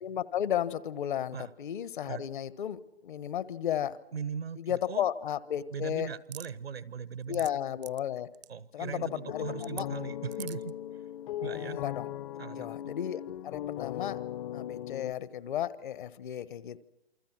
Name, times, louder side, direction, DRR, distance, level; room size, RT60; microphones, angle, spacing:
voice 1, 0.0-4.0 4.6-6.1 7.3-8.3 8.7-9.9 11.4-12.1 12.5-14.2 14.5-16.8, left 10 dB, 55° left, 17 dB, 1.3 m, -34 dB
voice 2, 4.1-5.1 5.7-7.5 8.5-10.7 11.4-11.8 12.4-12.8, right 6 dB, 80° right, 17 dB, 1.3 m, -39 dB
sound 1, 6.3-6.5 7.1-7.5 7.8-8.0 8.3-8.5 9.6-9.8 10.3-10.7, right 13 dB, 45° right, 0.8 m, -43 dB
sound 2, 8.9-15.1, left 12 dB, 35° left, 0.8 m, -38 dB
28.0 x 25.0 x 6.1 m, 0.93 s
figure-of-eight pair, 125°, 30 cm